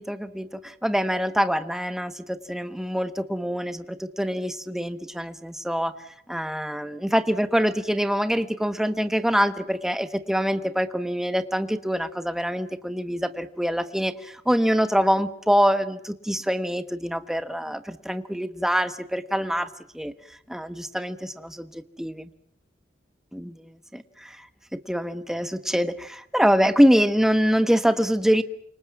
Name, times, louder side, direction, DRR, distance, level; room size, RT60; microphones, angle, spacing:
voice 1, 0.0-5.9 6.3-20.1 20.5-22.3 23.3-23.6 23.9-24.5 24.7-28.4, equal, 5° right, 10 dB, 1.2 m, -25 dB
29.0 x 25.5 x 6.1 m, 0.70 s
head